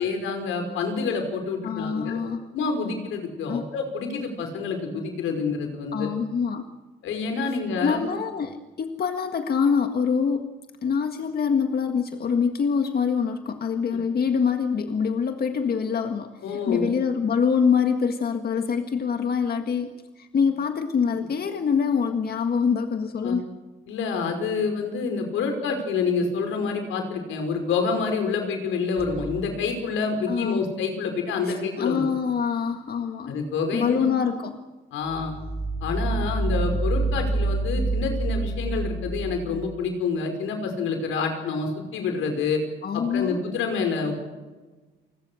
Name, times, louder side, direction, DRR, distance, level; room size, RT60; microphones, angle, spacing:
voice 1, 0.0-2.2 2.5-6.1 7.0-8.0 16.4-16.8 21.1-21.3 23.2-23.4 23.9-32.0 33.3-34.1 34.9-35.3 35.8-42.6 42.9-44.2, left 5 dB, 85° left, 5 dB, 5.4 m, -27 dB
voice 2, 1.6-2.4 3.5-3.6 5.9-6.7 7.8-10.5 10.8-23.4 30.3-30.6 31.4-33.4 33.7-34.6 42.8-43.4, left 6 dB, 50° left, 6 dB, 1.7 m, -25 dB
sound 1, 29.0-30.2 30.7-30.8 35.1-39.8, right 2 dB, 15° right, 5.2 m, -28 dB
29.0 x 20.5 x 6.4 m, 1.2 s
cardioid pair, 90°, 20 cm